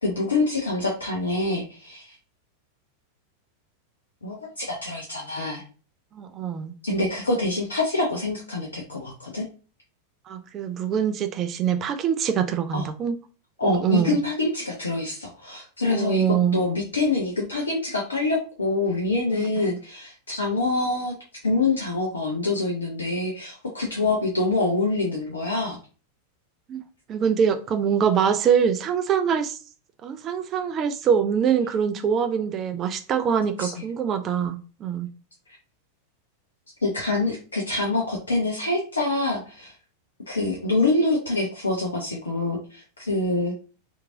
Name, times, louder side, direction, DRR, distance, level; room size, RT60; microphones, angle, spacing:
voice 1, 0.0-2.1 4.2-5.6 6.8-9.4 12.7-12.9 13.6-21.1 21.4-25.8 33.6-33.7 36.8-39.7 40.3-43.5, left 2 dB, 75° left, 0.6 m, -25 dB
voice 2, 6.1-6.7 10.3-13.2 13.6-14.2 15.9-16.6 19.3-19.5 26.7-26.8 27.1-29.6 30.0-35.1, right 7 dB, 30° right, 0.4 m, -24 dB
3.0 x 2.6 x 2.5 m
figure-of-eight pair, 90°, 0 cm